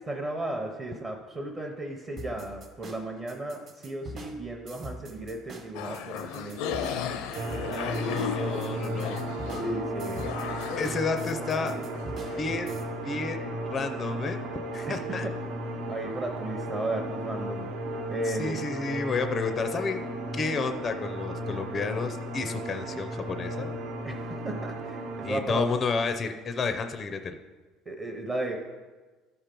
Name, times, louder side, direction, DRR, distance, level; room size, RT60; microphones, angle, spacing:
voice 1, 0.1-6.8 7.5-7.9 9.5-10.4 14.9-15.3 15.9-17.7 18.1-18.7 24.0-25.7 27.8-28.6, right 2 dB, 20° right, 1 dB, 0.7 m, -35 dB
sound 1, 2.2-12.8, right 1 dB, 35° right, 1.1 m, -44 dB
sound 2, 5.7-12.4, left 7 dB, 90° left, 0.7 m, -35 dB
sound 3, 7.3-25.4, right 1 dB, 70° right, 1.1 m, -35 dB
voice 2, 7.6-9.2 10.8-11.7 12.4-12.7 13.0-13.4 13.7-14.4 14.7-15.2 18.4-20.0 20.3-23.7 25.2-27.4, left 4 dB, 25° left, 7 dB, 0.5 m, -31 dB
13.0 x 4.4 x 5.2 m, 1.3 s
cardioid pair, 170°, 0 cm